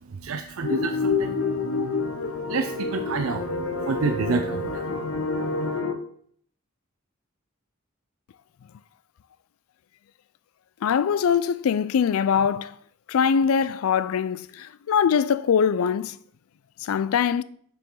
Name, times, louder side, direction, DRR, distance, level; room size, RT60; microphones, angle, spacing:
voice 1, 0.1-1.4 2.5-4.8, right 4 dB, 80° right, 0.5 m, -28 dB
sound 1, 0.6-5.9, left 4 dB, 70° left, 0.7 m, -28 dB
voice 2, 10.8-12.8 13.1-16.2 16.8-17.4, left 7 dB, 85° left, 0.4 m, -22 dB
6.9 x 6.1 x 3.8 m
head